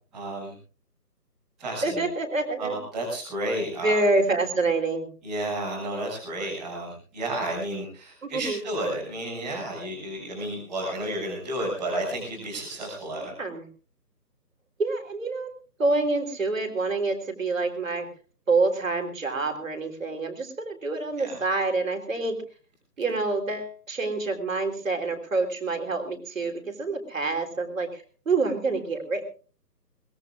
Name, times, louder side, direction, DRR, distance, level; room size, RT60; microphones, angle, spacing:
voice 1, 0.1-0.5 1.6-2.0 2.6-3.9 5.2-13.3 21.2-21.4, right 1 dB, ahead, -18 dB, 1.2 m, -32 dB
voice 2, 1.8-2.8 3.8-5.1 8.2-8.6 13.4-13.6 14.8-15.5 15.8-18.1 18.5-22.4 23.0-29.3, right 3 dB, 50° right, 4 dB, 3.5 m, -27 dB
23.0 x 20.5 x 2.4 m, 0.37 s
figure-of-eight pair, 165°, 49 cm